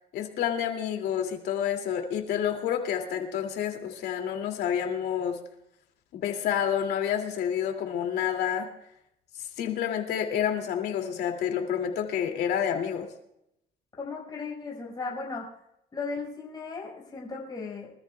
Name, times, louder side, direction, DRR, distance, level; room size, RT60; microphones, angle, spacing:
voice 1, 0.1-5.4 6.1-8.7 9.4-13.1, left 9 dB, 75° left, 3 dB, 2.5 m, -29 dB
voice 2, 14.0-15.5 15.9-17.9, left 4 dB, 25° left, -3 dB, 5.3 m, -36 dB
24.5 x 14.0 x 2.3 m, 0.81 s
cardioid pair, 110°, 17 cm